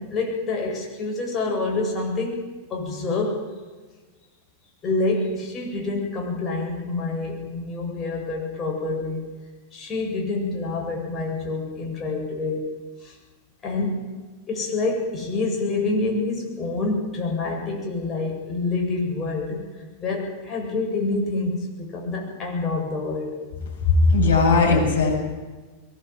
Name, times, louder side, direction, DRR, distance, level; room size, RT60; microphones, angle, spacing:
voice 1, 0.0-3.5 4.8-9.3 9.7-12.7 13.0-13.2 13.6-14.1 14.5-19.6 20.0-23.4, left 3 dB, 25° left, -1 dB, 8.0 m, -27 dB
voice 2, 23.8-25.2, left 3 dB, 65° left, -3 dB, 8.0 m, -18 dB
22.0 x 19.5 x 7.8 m, 1.3 s
figure-of-eight pair, 90°, 0 cm